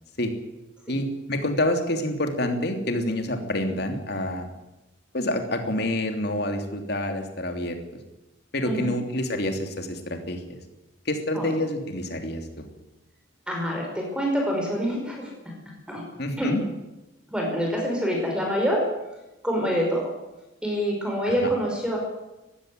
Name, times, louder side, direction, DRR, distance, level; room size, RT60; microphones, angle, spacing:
voice 1, 0.9-4.5 5.1-7.8 8.5-10.6 11.0-12.7 16.2-16.6 21.3-21.5, left 1 dB, 50° left, 5 dB, 3.2 m, -27 dB
voice 2, 13.5-15.3 15.9-16.0 16.4-16.5 17.3-18.8 19.4-20.1 20.6-22.0, equal, 5° right, -1 dB, 5.3 m, -26 dB
19.5 x 16.0 x 9.6 m, 1.0 s
head